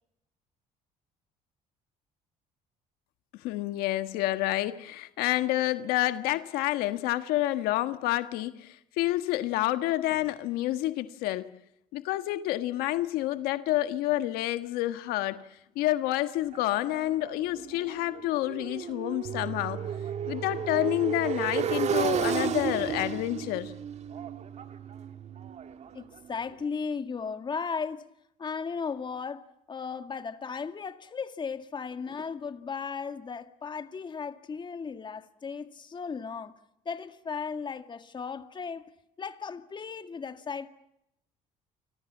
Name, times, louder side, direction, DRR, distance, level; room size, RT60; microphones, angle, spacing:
voice 1, 3.4-11.5 11.9-15.4 15.7-19.8 20.3-23.7, left 16 dB, 85° left, 1.6 m, -29 dB
Motorcycle, 16.5-26.4, right 8 dB, 45° right, 1.8 m, -33 dB
Bass guitar, 19.2-25.5, right 10 dB, 70° right, 3.4 m, -43 dB
voice 2, 25.9-28.0 28.4-38.9 39.2-40.7, left 5 dB, 30° left, 2.0 m, -36 dB
29.5 x 25.5 x 7.3 m
cardioid pair, 105°, 15 cm